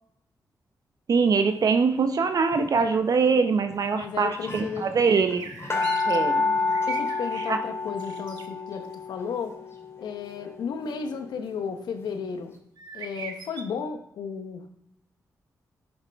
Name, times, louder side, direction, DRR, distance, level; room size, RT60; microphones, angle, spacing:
voice 1, 1.1-5.4 6.1-6.4 7.5-7.6, right 5 dB, 60° right, 8 dB, 0.7 m, -23 dB
sound 1, 2.5-2.9 3.7-3.8 4.0-4.1 4.3-11.9 12.4-12.5, left 3 dB, 40° left, 2.4 m, -30 dB
voice 2, 3.9-4.8 5.7-5.9 6.9-9.6 10.0-12.5 12.9-14.6, left 6 dB, 90° left, 7 dB, 0.9 m, -34 dB
sound 2, 5.0-6.2 6.5-7.6 8.0-8.4 12.8-13.6, right 5 dB, 80° right, 1.1 m, -39 dB
10.0 x 8.0 x 3.4 m, 0.73 s
cardioid pair, 60°, 7 cm